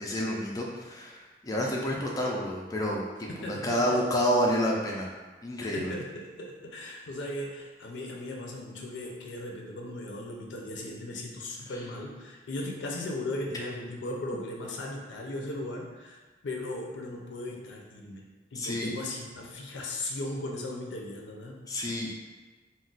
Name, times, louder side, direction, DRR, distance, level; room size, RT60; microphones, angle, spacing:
voice 1, 0.0-3.0 3.6-5.1 5.4-5.8 18.6-18.9 21.7-22.1, equal, 20° left, -3 dB, 0.3 m, -29 dB
voice 2, 3.4-4.0 5.7-21.7, left 1 dB, 85° left, 0 dB, 0.5 m, -37 dB
2.4 x 2.1 x 3.8 m, 1.2 s
head